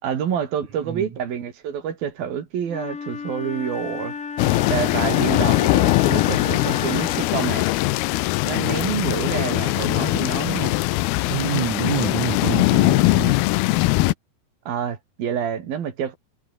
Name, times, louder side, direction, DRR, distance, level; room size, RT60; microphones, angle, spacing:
voice 1, 0.0-4.2 4.7-7.7 8.4-10.8 14.7-16.2, right 8 dB, 70° right, 4.5 m, -28 dB
voice 2, 0.8-1.1 11.3-13.4, right 7 dB, 55° right, 3.6 m, -27 dB
Wind instrument woodwind instrument, 2.7-7.5, left 5 dB, 60° left, 0.8 m, -33 dB
sound 1, 4.4-14.1, left 19 dB, 85° left, 2.7 m, -21 dB
omnidirectional pair, 4.4 m